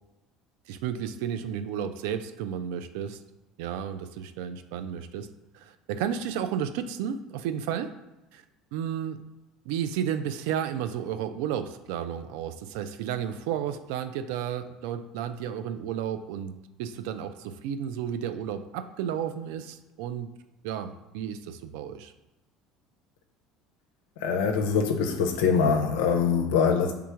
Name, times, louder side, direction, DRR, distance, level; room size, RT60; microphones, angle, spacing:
voice 1, 0.7-3.2 3.6-5.3 5.5-7.9 8.3-8.4 8.7-9.2 9.7-16.5 16.8-20.3 20.6-22.1, right 9 dB, 75° right, 9 dB, 0.3 m, -32 dB
voice 2, 24.2-26.9, left 6 dB, 80° left, 4 dB, 0.4 m, -23 dB
3.4 x 3.1 x 4.8 m, 1.0 s
hypercardioid pair, 75°, 0 cm